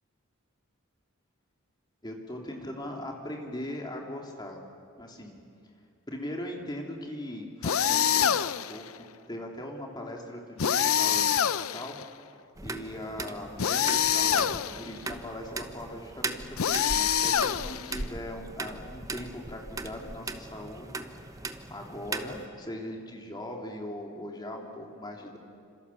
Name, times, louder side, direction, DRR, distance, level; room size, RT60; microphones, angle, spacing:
voice 1, 2.0-4.6 5.0-5.4 5.6-5.7 6.1-8.8 9.3-12.0 12.2-12.3 12.6-21.1 21.7-25.4, left 1 dB, 20° left, 0 dB, 3.0 m, -40 dB
sound 1, 7.6-8.8 10.6-12.0 13.6-14.9 16.6-18.0, left 9 dB, 80° left, 0.6 m, -26 dB
sound 2, 12.5-22.5, right 3 dB, 15° right, 1.0 m, -39 dB
27.5 x 27.0 x 7.2 m, 2.4 s
head